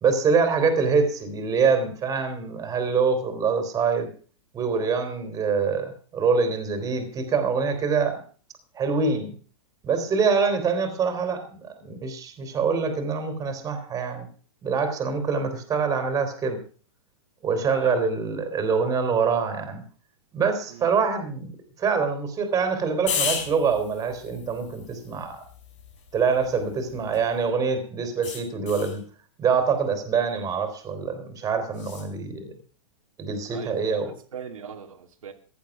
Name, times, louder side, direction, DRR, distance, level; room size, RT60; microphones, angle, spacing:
voice 1, 0.0-4.1 4.5-8.2 8.7-9.4 9.8-14.3 14.6-16.6 17.4-19.8 20.3-21.5 21.8-25.4 26.1-29.0 29.4-32.5 33.2-34.1, right 5 dB, 20° right, 3.3 m, -25 dB
voice 2, 17.7-18.0 20.7-21.0 33.5-35.3, right 7 dB, 90° right, 2.4 m, -41 dB
sound 1, 23.1-27.5 28.2-29.0 31.7-32.1, left 7 dB, 65° left, 4.5 m, -35 dB
15.5 x 11.0 x 6.0 m
hypercardioid pair, 140°, 17 cm